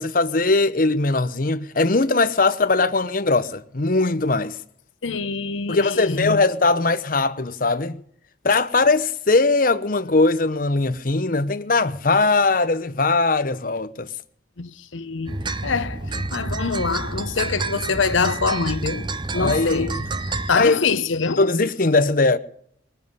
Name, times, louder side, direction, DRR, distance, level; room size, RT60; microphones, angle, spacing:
voice 1, 0.0-4.6 5.7-8.0 8.4-14.1 19.4-20.0 20.5-20.8 21.4-22.4, left 3 dB, 45° left, 0.9 m, -20 dB
voice 2, 5.0-6.4 14.6-20.0 20.3-21.5, left 4 dB, 90° left, 0.9 m, -25 dB
sound 1, 15.3-20.5, right 3 dB, 25° right, 0.6 m, -29 dB
20.5 x 7.0 x 9.6 m
head